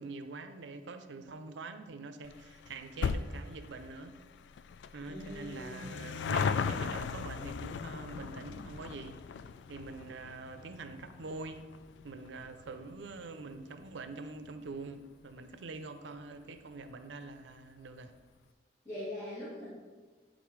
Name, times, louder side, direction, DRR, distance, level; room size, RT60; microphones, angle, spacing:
voice 1, 0.0-4.2 4.9-9.2 9.7-11.6 12.0-18.1, right 3 dB, 90° right, 8 dB, 0.5 m, -45 dB
sound 1, 2.2-15.0 15.3-15.4 16.3-16.4 16.6-16.7 16.9-17.0, left 6 dB, 80° left, 0.3 m, -38 dB
voice 2, 5.1-5.8 18.8-19.7, left 1 dB, 15° left, -12 dB, 2.5 m, -41 dB
10.5 x 3.9 x 4.7 m, 1.4 s
head